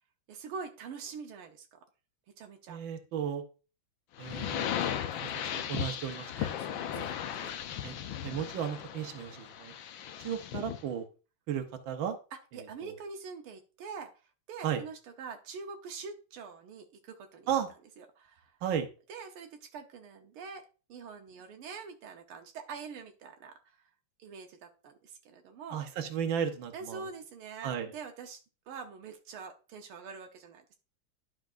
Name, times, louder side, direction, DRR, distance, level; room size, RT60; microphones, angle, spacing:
voice 1, 0.3-1.8 2.4-2.8 6.4-7.5 10.4-10.5 12.5-14.1 14.5-17.5 18.0-18.5 19.1-20.6 20.9-23.8 24.2-25.8 26.7-28.4 28.7-30.7, right 5 dB, 85° right, 4 dB, 1.8 m, -45 dB
voice 2, 2.7-3.4 4.2-4.7 5.2-5.3 5.7-7.1 7.8-7.9 8.2-9.7 10.2-11.1 11.5-12.2 12.5-12.6 14.6-14.8 17.5-17.7 18.6-18.9 25.7-27.1 27.6-27.9, right 8 dB, 65° right, 6 dB, 1.7 m, -34 dB
sound 1, 4.2-10.9, left 10 dB, 70° left, 1.4 m, -36 dB
11.5 x 5.9 x 2.5 m, 0.33 s
omnidirectional pair, 2.3 m